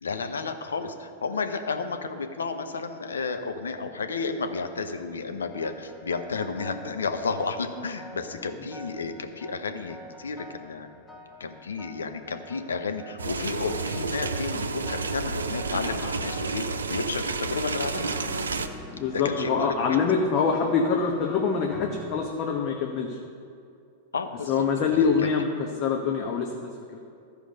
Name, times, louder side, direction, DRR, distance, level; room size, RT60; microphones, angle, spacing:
voice 1, 0.0-10.9 11.4-18.0 19.1-20.0 24.1-24.5 24.9-25.3, left 4 dB, 85° left, 7 dB, 0.8 m, -32 dB
sound 1, 5.5-17.4 17.9-22.3, equal, 20° left, 1.1 m, -45 dB
sound 2, 13.2-18.7, right 4 dB, 85° right, 0.6 m, -30 dB
voice 2, 18.9-23.2 24.5-27.0, left 5 dB, 45° left, 1 dB, 1.0 m, -25 dB
14.0 x 5.0 x 5.2 m, 2.4 s
hypercardioid pair, 100°, 0 cm